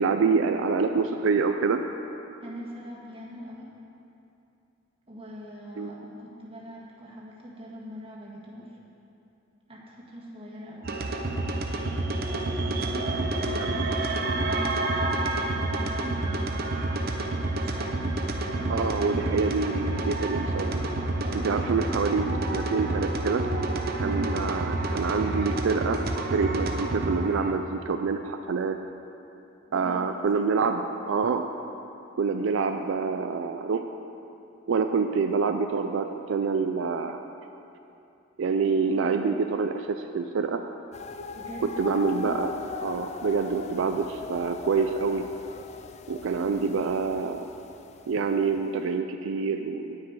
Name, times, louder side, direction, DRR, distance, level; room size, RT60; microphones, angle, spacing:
voice 1, 0.0-1.8 5.8-5.9 13.5-13.7 18.7-20.8 21.3-23.5 24.0-26.0 26.3-28.8 29.7-31.4 32.2-33.8 34.7-37.2 38.4-40.6 41.6-42.5 42.8-45.3 46.1-47.5 48.1-50.0, right 5 dB, 80° right, 6 dB, 0.4 m, -26 dB
voice 2, 2.4-3.7 5.1-8.7 9.7-11.0 12.3-16.4 17.6-18.1 18.6-19.6 21.2-22.4 24.0-24.3 29.7-30.0 41.3-42.2, equal, 30° right, -4 dB, 1.7 m, -41 dB
sound 1, 10.8-27.5, right 2 dB, 50° right, 0.8 m, -29 dB
sound 2, 40.9-48.7, left 4 dB, 35° left, 0.4 m, -40 dB
9.7 x 9.3 x 4.7 m, 2.8 s
head